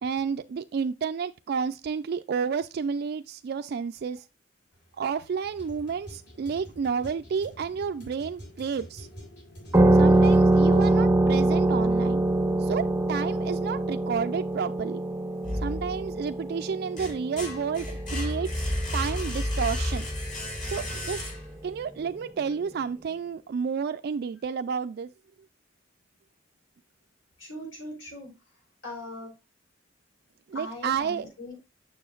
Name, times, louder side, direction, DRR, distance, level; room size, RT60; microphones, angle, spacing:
voice 1, 0.0-4.2 5.0-9.1 10.0-12.2 12.6-15.0 15.6-18.7 18.9-20.1 20.6-21.2 21.6-25.1 30.5-31.3, right 6 dB, 55° right, 0.3 m, -31 dB
sound 1, 4.7-10.9, equal, 65° left, 3.5 m, -47 dB
sound 2, 9.7-18.9, right 2 dB, 10° right, 0.6 m, -23 dB
sound 3, 15.4-16.3 16.7-21.7, left 1 dB, 45° left, 2.5 m, -32 dB
voice 2, 27.4-28.3 28.8-29.3 30.5-31.6, left 1 dB, 90° left, 4.0 m, -40 dB
6.9 x 6.5 x 2.3 m
head